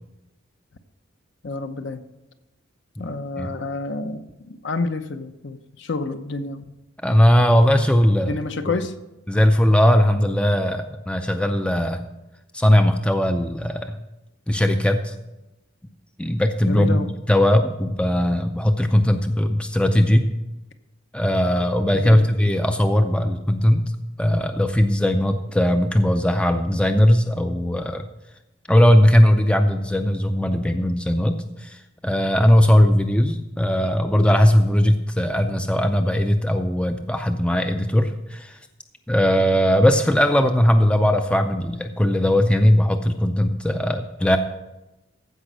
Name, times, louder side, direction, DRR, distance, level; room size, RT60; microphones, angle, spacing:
voice 1, 1.4-2.1 3.0-6.7 8.3-8.9 16.6-17.1 21.9-22.3, left 3 dB, 55° left, 9 dB, 0.8 m, -29 dB
voice 2, 7.0-8.4 9.3-12.0 12.5-14.0 14.5-15.1 16.2-20.3 21.1-23.9 24.2-28.1 28.7-38.6 39.1-44.4, equal, 5° left, 7 dB, 0.4 m, -19 dB
15.0 x 5.3 x 6.1 m, 0.98 s
head